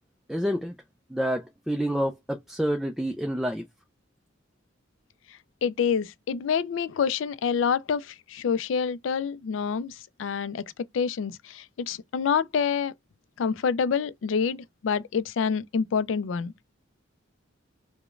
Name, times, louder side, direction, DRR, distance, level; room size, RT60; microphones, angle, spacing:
voice 1, 0.3-0.7 1.1-3.6, equal, ahead, 0.3 m, -28 dB
voice 2, 5.6-10.6 10.9-12.9 13.4-16.5, left 6 dB, 80° left, 0.4 m, -27 dB
4.9 x 2.1 x 2.4 m
head